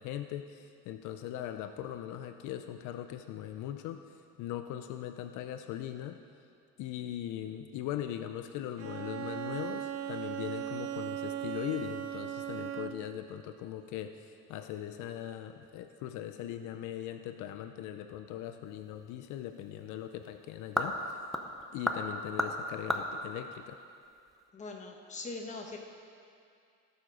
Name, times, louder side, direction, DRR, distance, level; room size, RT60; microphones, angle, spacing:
voice 1, 0.0-4.0 4.4-6.2 6.8-21.2 21.7-23.8, left 11 dB, 75° left, 8 dB, 0.6 m, -40 dB
Bowed string instrument, 8.8-13.2, right 10 dB, 60° right, 0.6 m, -38 dB
sound 1, 18.6-24.5, equal, ahead, 0.7 m, -37 dB
voice 2, 24.5-25.8, left 3 dB, 25° left, 1 dB, 1.2 m, -41 dB
17.0 x 7.0 x 5.0 m, 2.4 s
cardioid pair, 150°, 30 cm